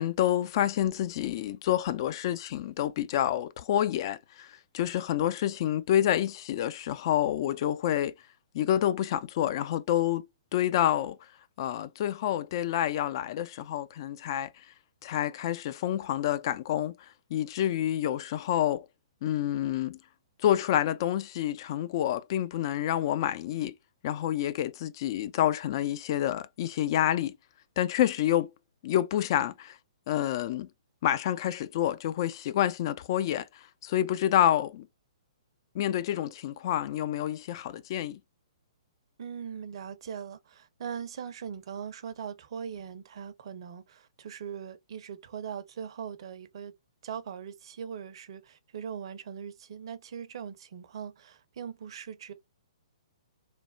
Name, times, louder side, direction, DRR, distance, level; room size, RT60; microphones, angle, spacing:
voice 1, 0.0-4.5 4.7-8.1 8.5-10.3 10.5-11.2 11.6-14.5 15.0-16.9 17.3-18.9 19.2-20.0 20.4-23.7 24.0-27.3 27.8-28.5 28.8-29.8 30.1-30.7 31.0-33.4 33.8-34.9 35.7-38.2, left 11 dB, 45° left, 0.3 m, -28 dB
voice 2, 39.2-46.7 47.0-52.3, right 7 dB, 55° right, 0.5 m, -40 dB
3.2 x 2.1 x 2.4 m
figure-of-eight pair, 125°, 3 cm